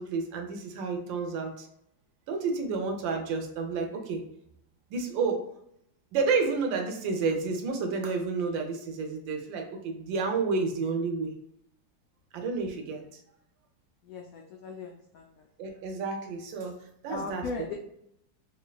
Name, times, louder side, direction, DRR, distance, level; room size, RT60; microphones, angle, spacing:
voice 1, 0.0-1.7 2.3-4.2 4.9-5.5 6.1-11.3 12.3-13.0 15.6-16.8 17.0-17.7, right 4 dB, 80° right, 4 dB, 1.4 m, -30 dB
voice 2, 14.0-15.5 17.1-17.7, left 4 dB, 85° left, 1 dB, 0.7 m, -38 dB
3.7 x 3.2 x 2.2 m, 0.75 s
omnidirectional pair, 2.0 m